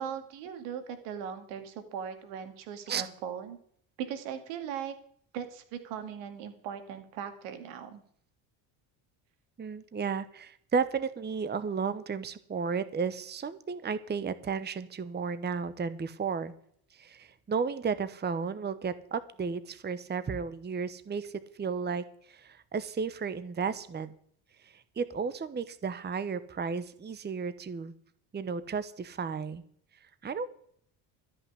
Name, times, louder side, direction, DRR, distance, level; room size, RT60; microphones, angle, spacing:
voice 1, 0.0-3.6 4.0-4.9 5.3-8.0, right 8 dB, 85° right, 8 dB, 2.3 m, -39 dB
voice 2, 9.6-16.5 16.9-21.3 21.6-24.1 24.6-27.9 28.3-29.6 30.2-30.5, right 5 dB, 20° right, 14 dB, 0.9 m, -33 dB
13.0 x 5.9 x 9.7 m, 0.63 s
supercardioid pair, 90°, 49 cm